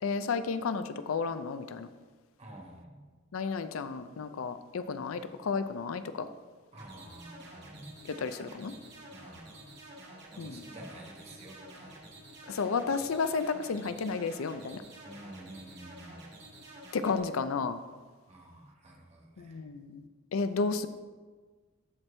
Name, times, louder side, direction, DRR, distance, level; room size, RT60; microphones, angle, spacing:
voice 1, 0.0-1.9 3.3-6.3 8.2-8.7 10.4-10.6 12.5-14.8 16.9-17.8 19.4-20.0 20.3-20.9, left 4 dB, 80° left, 11 dB, 0.5 m, -32 dB
voice 2, 2.4-3.0 6.7-7.9 9.1-9.8 10.3-12.1 15.0-16.2 18.3-19.6, right 1 dB, 30° right, -1 dB, 1.3 m, -50 dB
sound 1, 6.8-17.2, right 1 dB, 55° right, 2.1 m, -50 dB
13.5 x 4.5 x 3.3 m, 1.4 s
head